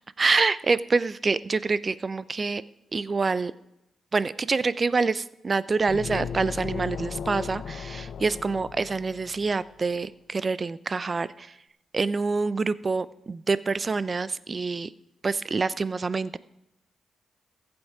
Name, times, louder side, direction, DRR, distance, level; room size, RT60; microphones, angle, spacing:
voice 1, 0.2-2.6 2.9-3.5 4.1-11.6 11.9-14.9 15.2-16.4, right 4 dB, 40° right, 17 dB, 0.5 m, -26 dB
sound 1, 5.9-9.6, left 7 dB, 70° left, 0.5 m, -36 dB
14.5 x 7.9 x 4.7 m, 0.89 s
supercardioid pair, 50°, 0 cm